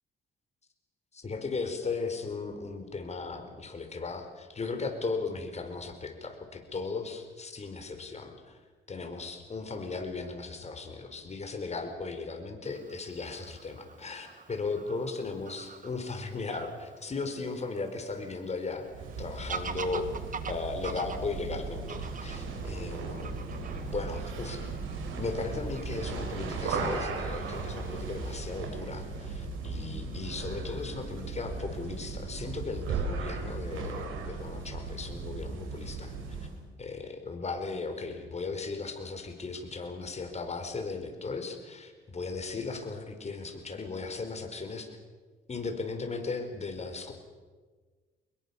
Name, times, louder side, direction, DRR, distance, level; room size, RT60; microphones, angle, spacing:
voice 1, 1.1-8.6 8.9-20.1 20.5-23.4 23.8-24.6 24.9-36.5 36.8-45.0 45.5-47.1, left 4 dB, 35° left, 5 dB, 4.6 m, -37 dB
Fowl / Bird vocalization bird call bird song, 12.6-28.4, right 5 dB, 40° right, 2.0 m, -46 dB
sound 1, 18.9-36.6, right 4 dB, 90° right, 4.4 m, -36 dB
24.0 x 21.5 x 7.1 m, 1.4 s
cardioid pair, 90°, 20 cm